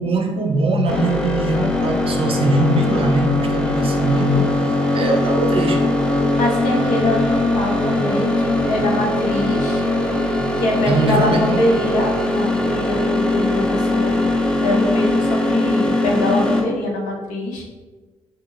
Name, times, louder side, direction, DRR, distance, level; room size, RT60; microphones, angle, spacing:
voice 1, 0.0-5.9 10.9-11.7, right 1 dB, 40° right, 2 dB, 0.6 m, -21 dB
sound 1, 0.9-16.6, left 1 dB, 5° left, 0.5 m, -20 dB
voice 2, 6.3-9.8 10.2-14.3 14.6-17.6, left 1 dB, 75° left, -1 dB, 0.7 m, -24 dB
2.6 x 2.5 x 3.1 m, 1.3 s
hypercardioid pair, 55°, 14 cm